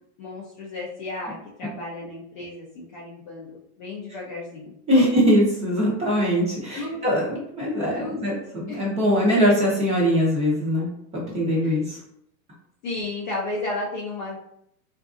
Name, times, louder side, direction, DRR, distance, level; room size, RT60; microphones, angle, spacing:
voice 1, 0.2-5.1 6.7-7.0 8.0-8.2 8.7-8.8 11.6-11.9 12.8-14.4, left 2 dB, 30° left, -5 dB, 0.4 m, -33 dB
voice 2, 4.9-12.0, equal, 15° right, -4 dB, 0.6 m, -22 dB
3.7 x 2.5 x 2.5 m, 0.72 s
supercardioid pair, 145°, 49 cm